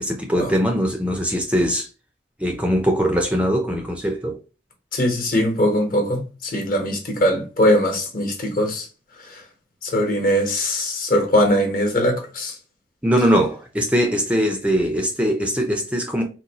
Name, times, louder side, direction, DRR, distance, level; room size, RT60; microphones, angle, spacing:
voice 1, 0.0-1.9 2.4-4.4 13.0-16.2, equal, 5° right, 0.4 m, -21 dB
voice 2, 4.9-8.9 9.2-9.4 9.8-12.6, equal, 50° left, 1.1 m, -21 dB
3.9 x 2.2 x 2.8 m
head